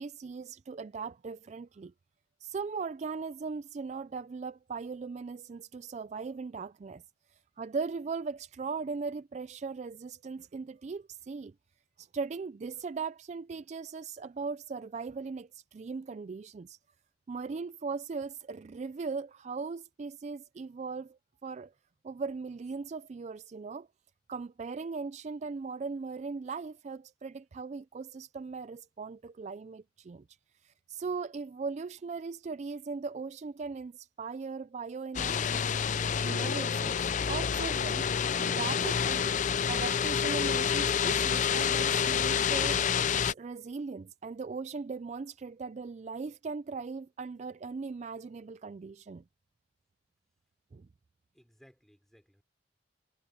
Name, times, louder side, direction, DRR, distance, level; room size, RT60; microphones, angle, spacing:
voice 1, 0.0-1.9 2.4-7.0 7.3-11.5 12.0-16.8 17.3-21.7 22.0-23.9 24.3-30.2 30.6-35.8 36.2-38.1 38.4-42.8 43.3-49.2 50.7-50.9, right 4 dB, 35° right, 0.3 m, -39 dB
sound 1, 35.1-43.3, left 7 dB, 40° left, 0.4 m, -28 dB
voice 2, 51.3-52.4, equal, ahead, 4.8 m, -61 dB
head